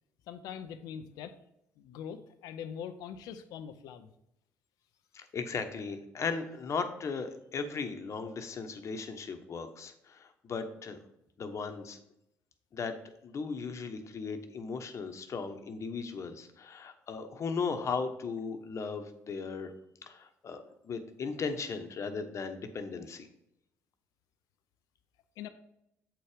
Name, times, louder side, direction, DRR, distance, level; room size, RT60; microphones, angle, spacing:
voice 1, 0.3-1.4 1.8-4.1 25.4-25.5, left 8 dB, 80° left, 10 dB, 0.7 m, -42 dB
voice 2, 5.1-11.0 11.4-12.0 12.7-12.9 13.2-19.7 20.0-23.3, left 5 dB, 50° left, 7 dB, 1.2 m, -37 dB
7.9 x 4.5 x 5.0 m, 0.79 s
supercardioid pair, 65°, 6 cm